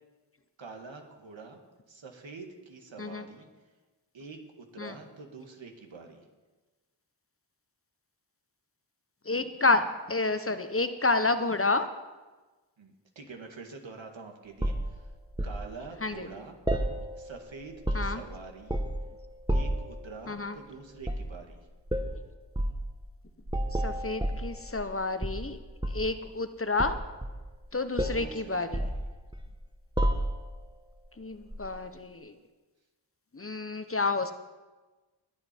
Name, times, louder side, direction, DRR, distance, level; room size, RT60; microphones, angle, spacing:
voice 1, 0.6-1.6 1.9-3.5 4.1-6.2 12.8-15.1 15.4-16.6 17.2-18.8 19.5-21.6 28.0-29.0, right 4 dB, 80° right, 3 dB, 2.0 m, -46 dB
voice 2, 9.3-11.9 16.0-16.3 17.9-18.2 20.3-20.5 23.8-25.6 25.9-26.9 27.7-28.8 31.2-32.3 33.3-34.3, left 3 dB, 30° left, 9 dB, 1.0 m, -29 dB
sound 1, 14.6-15.6 16.7-17.4 17.7-18.3 18.7-19.1 19.5-19.9 21.0-21.3 21.9-22.1 22.5-22.8 23.5-24.9 25.2-26.1 26.8-27.6 28.0-28.3 28.7-29.5 30.0-30.6 31.5-31.7, right 1 dB, 10° right, 1.3 m, -30 dB
21.0 x 7.8 x 4.5 m, 1.2 s
cardioid pair, 45°, 46 cm